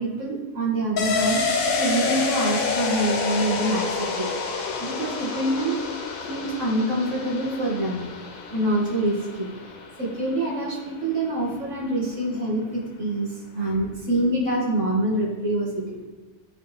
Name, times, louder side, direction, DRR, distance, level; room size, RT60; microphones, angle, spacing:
voice 1, 0.0-4.3 4.8-5.8 6.3-8.0 8.5-9.5 10.0-16.0, right 1 dB, 65° right, -3 dB, 2.0 m, -26 dB
sound 1, 1.0-10.4 10.7-10.8, left 4 dB, 90° left, 1.3 m, -28 dB
12.0 x 4.4 x 3.3 m, 1.2 s
omnidirectional pair, 1.4 m